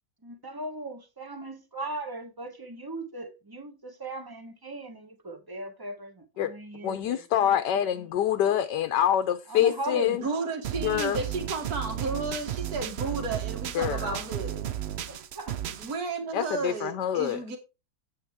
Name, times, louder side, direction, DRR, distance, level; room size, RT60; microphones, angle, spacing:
voice 1, 0.2-8.1 8.3-8.5 9.5-10.2 15.1-15.6, right 2 dB, 15° right, 1.1 m, -39 dB
voice 2, 6.8-10.2 10.8-11.2 13.7-14.2 16.3-17.4, left 10 dB, 80° left, 1.3 m, -26 dB
voice 3, 10.0-14.7 15.8-17.6, right 3 dB, 60° right, 2.2 m, -33 dB
sound 1, 10.6-15.9, right 11 dB, 75° right, 0.6 m, -34 dB
8.7 x 8.4 x 3.5 m
omnidirectional pair, 1.9 m